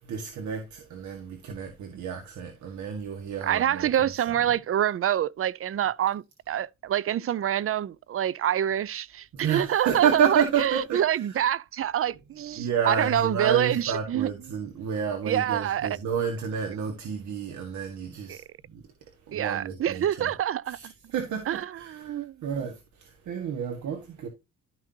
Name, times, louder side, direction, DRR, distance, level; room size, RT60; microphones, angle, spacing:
voice 1, 0.1-3.9 9.3-11.0 12.6-18.4 18.7-18.8 19.3-20.3 20.7-24.3, right 7 dB, 70° right, 1.9 m, -30 dB
voice 2, 3.4-14.3 15.3-16.0 18.3-18.4 19.3-20.9 21.5-22.4, right 10 dB, 45° right, 0.6 m, -26 dB
12.5 x 6.0 x 2.8 m
cardioid pair, 90°, 30 cm